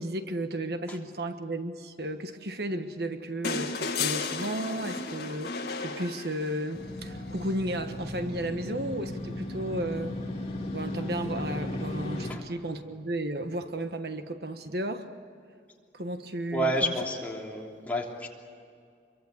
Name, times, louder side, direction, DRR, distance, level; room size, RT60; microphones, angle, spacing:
voice 1, 0.0-10.2 10.7-15.1 15.9-16.9, right 1 dB, 65° right, 8 dB, 1.3 m, -34 dB
sound 1, 3.4-6.8 8.3-8.4, left 4 dB, 65° left, 2.0 m, -33 dB
Motorcycle, 6.7-12.3, left 1 dB, 35° left, 3.0 m, -36 dB
voice 2, 16.5-18.3, equal, 10° left, -2 dB, 3.3 m, -30 dB
26.5 x 23.5 x 8.2 m, 2.3 s
head